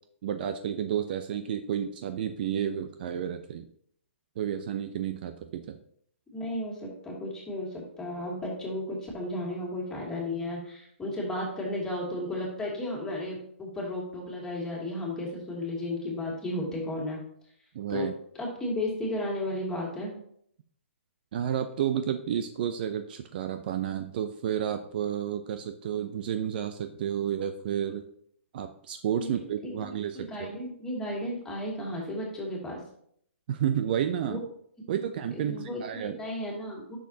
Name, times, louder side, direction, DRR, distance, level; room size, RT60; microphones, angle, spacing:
voice 1, 0.2-3.7 4.4-5.8 17.7-18.1 21.3-28.0 28.5-30.5 33.5-34.4 34.9-36.2, right 9 dB, 45° right, 8 dB, 0.6 m, -31 dB
voice 2, 6.3-17.2 17.9-18.1 18.4-20.1 29.2-29.3 29.8-32.8 34.3-34.4 35.3-37.0, left 1 dB, 10° left, -3 dB, 2.5 m, -34 dB
10.0 x 6.5 x 2.8 m, 0.66 s
hypercardioid pair, 145°, 7 cm